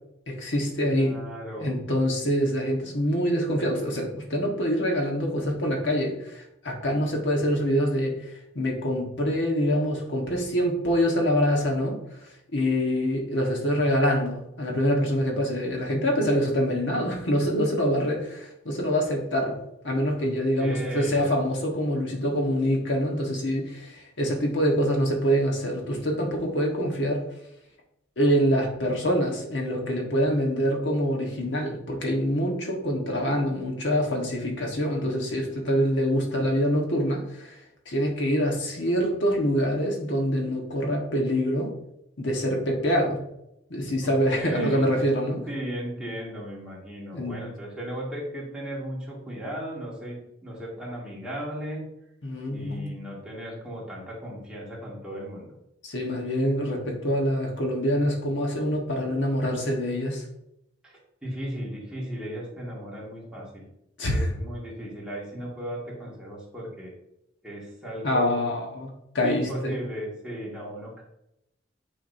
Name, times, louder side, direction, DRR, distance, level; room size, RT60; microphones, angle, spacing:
voice 1, 0.3-1.2 1.6-12.0 12.2-19.6 19.8-27.2 28.2-37.6 37.9-41.7 42.2-43.2 43.7-45.4 47.1-47.4 52.2-52.9 55.8-60.2 64.0-64.3 68.0-68.9 69.1-69.7, equal, 75° left, 0 dB, 1.4 m, -25 dB
voice 2, 0.8-1.8 20.2-20.3 20.6-21.2 44.0-45.0 45.5-51.8 52.5-55.5 60.8-63.7 64.1-66.9 67.4-68.4 69.2-71.0, right 1 dB, 5° right, -6 dB, 2.1 m, -36 dB
8.9 x 4.8 x 2.7 m, 0.82 s
head